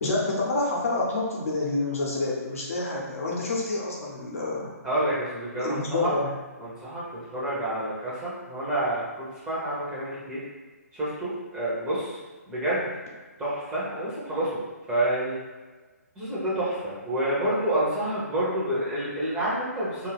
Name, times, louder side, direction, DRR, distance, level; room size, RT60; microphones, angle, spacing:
voice 1, 0.0-4.7 5.6-6.3, left 2 dB, 55° left, -3 dB, 0.8 m, -28 dB
voice 2, 4.8-6.1 6.6-10.4 10.9-12.2 12.5-12.9 13.4-14.6 14.9-15.4 16.2-20.1, right 1 dB, 10° right, -9 dB, 0.8 m, -28 dB
2.5 x 2.3 x 3.3 m, 1.3 s
figure-of-eight pair, 135°, 9 cm